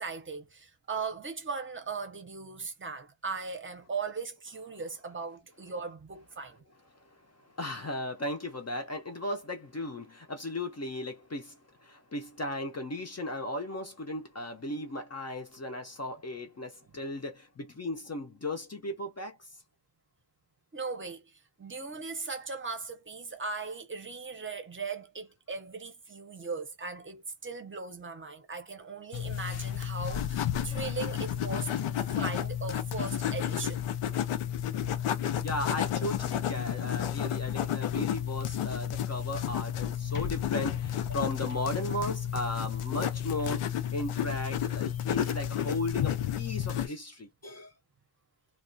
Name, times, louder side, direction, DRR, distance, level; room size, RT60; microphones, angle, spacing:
voice 1, 0.0-6.6 20.7-33.9 35.3-35.5, right 4 dB, 25° right, 0.7 m, -38 dB
voice 2, 7.3-19.5 30.7-30.9 32.1-32.2 34.8-47.7, left 1 dB, 35° left, 0.5 m, -36 dB
sound 1, 29.1-46.9, left 10 dB, 85° left, 0.6 m, -31 dB
2.3 x 2.1 x 2.6 m
wide cardioid pair, 115°, 49 cm